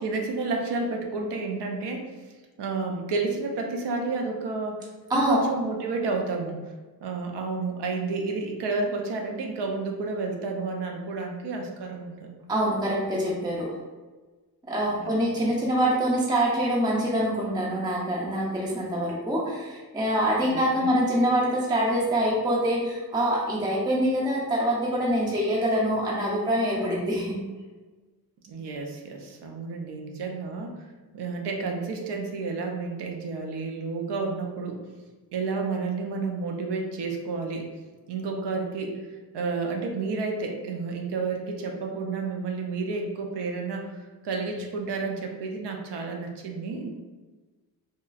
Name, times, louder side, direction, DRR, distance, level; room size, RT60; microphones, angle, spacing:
voice 1, 0.0-2.1 2.6-6.6 7.0-12.4 14.9-15.4 20.5-20.9 28.4-30.7 31.1-34.8 35.3-37.7 38.1-39.0 39.3-46.9, right 3 dB, 85° right, 2 dB, 0.6 m, -31 dB
voice 2, 5.1-5.5 12.5-13.8 14.6-27.4, equal, 10° right, -4 dB, 0.4 m, -25 dB
2.9 x 2.3 x 2.3 m, 1.3 s
wide cardioid pair, 125°, 40 cm